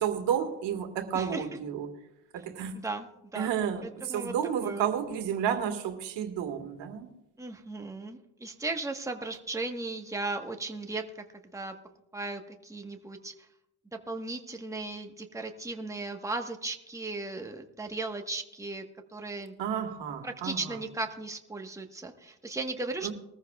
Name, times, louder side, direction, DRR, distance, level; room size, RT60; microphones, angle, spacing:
voice 1, 0.0-1.9 2.3-2.7 3.4-7.1 19.6-20.8 23.0-23.1, right 8 dB, 80° right, 1.8 m, -31 dB
voice 2, 1.1-1.5 2.7-3.1 3.3-3.5 3.8-4.3 4.6-4.8 7.4-11.0 11.5-11.7 12.1-13.5 14.1-18.8 19.1-19.5 20.2-23.1, right 3 dB, 5° right, 1.2 m, -36 dB
21.5 x 14.0 x 2.3 m
cardioid pair, 85°, 43 cm